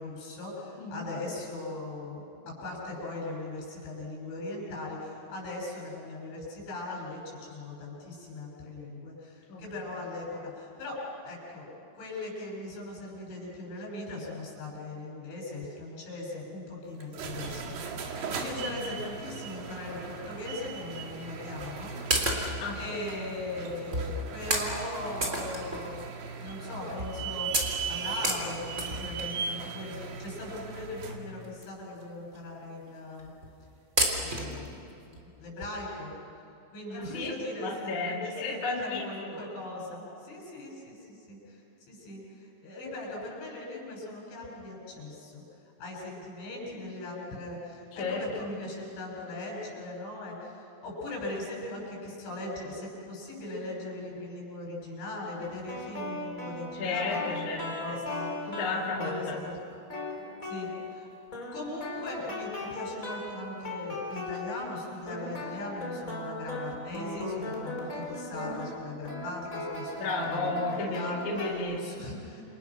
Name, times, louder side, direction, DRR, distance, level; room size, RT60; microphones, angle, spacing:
voice 1, 0.0-11.7 11.9-22.0 22.7-26.0 26.4-33.3 34.2-36.2 36.7-41.6 41.9-45.4 45.8-58.3 59.0-59.5 60.4-61.1 61.5-71.3 71.8-72.4, left 2 dB, 70° left, -2 dB, 10.5 m, -39 dB
sound 1, 17.0-31.3, right 5 dB, 60° right, 3.8 m, -38 dB
sound 2, 21.6-21.7 22.1-22.7 23.4-23.5 23.9-24.1 24.5-24.7 25.2-26.1 26.5-26.6 27.0-27.2 27.5-29.4 30.4-30.5 31.1-31.2 31.4-31.6 32.0-32.1 32.3-32.4 33.2-33.5 34.0-34.7 35.1-35.2 35.6-35.7, right 1 dB, 15° right, 3.1 m, -30 dB
voice 2, 36.9-37.3 37.6-39.5 47.9-48.2 56.7-58.0 58.5-59.4 70.0-71.8, left 3 dB, 45° left, -2 dB, 3.4 m, -33 dB
sound 3, 55.4-59.4 59.9-61.0 61.3-64.8 65.1-71.5, left 2 dB, 20° left, 3.9 m, -38 dB
29.0 x 29.0 x 6.5 m, 2.8 s
omnidirectional pair, 5.6 m